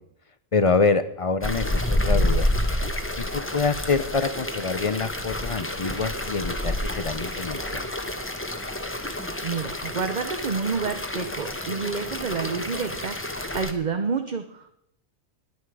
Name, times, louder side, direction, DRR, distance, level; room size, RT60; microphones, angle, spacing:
voice 1, 0.5-2.5 3.2-7.9, left 4 dB, 40° left, 13 dB, 0.5 m, -26 dB
sound 1, 1.4-13.7, left 1 dB, 10° left, 1.1 m, -29 dB
voice 2, 9.4-13.2 13.5-14.7, right 5 dB, 40° right, 7 dB, 0.7 m, -29 dB
21.0 x 8.2 x 4.8 m, 0.76 s
omnidirectional pair, 1.4 m